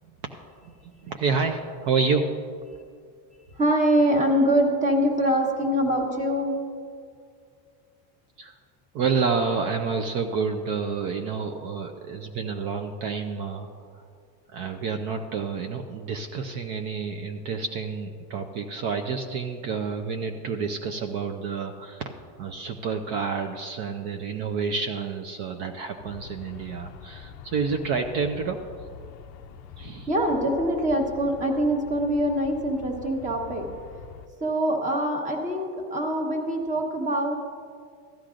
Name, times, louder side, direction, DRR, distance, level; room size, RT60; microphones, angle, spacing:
voice 1, 1.0-2.3 8.4-8.6 8.9-14.1 14.5-28.6 29.8-30.1, right 5 dB, 55° right, 5 dB, 0.7 m, -29 dB
voice 2, 3.5-6.6 30.1-33.7 34.4-37.3, right 1 dB, 15° right, 2 dB, 1.2 m, -24 dB
Aircraft, 26.0-34.3, left 7 dB, 40° left, 0.4 m, -45 dB
15.5 x 11.5 x 2.5 m, 2.2 s
supercardioid pair, 145°, 45 cm